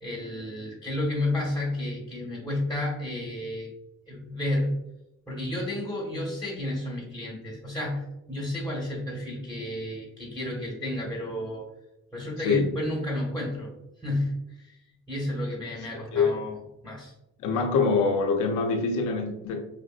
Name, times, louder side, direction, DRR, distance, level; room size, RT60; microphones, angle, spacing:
voice 1, 0.0-3.7 4.1-4.8 5.3-11.7 12.1-13.7 14.0-14.8 15.1-17.1, left 1 dB, 5° left, -3 dB, 1.3 m, -31 dB
voice 2, 17.4-19.6, left 4 dB, 80° left, 3 dB, 0.6 m, -24 dB
5.0 x 2.5 x 2.4 m, 0.90 s
cardioid pair, 90°, 30 cm